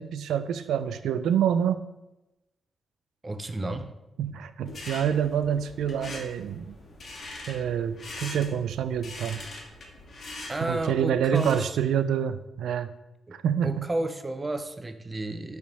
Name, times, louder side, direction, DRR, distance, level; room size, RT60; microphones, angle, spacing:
voice 1, 0.0-1.8 4.2-6.8 7.5-9.4 10.6-12.9 13.3-13.9, right 8 dB, 85° right, 12 dB, 0.3 m, -27 dB
voice 2, 3.2-3.9 4.3-4.4 10.5-11.8 13.3-13.4 13.6-15.6, right 2 dB, 30° right, 9 dB, 0.6 m, -32 dB
sound 1, 4.6-11.7, left 2 dB, 55° left, 1.4 m, -42 dB
5.3 x 3.4 x 5.2 m, 0.97 s
supercardioid pair, 60°, 0 cm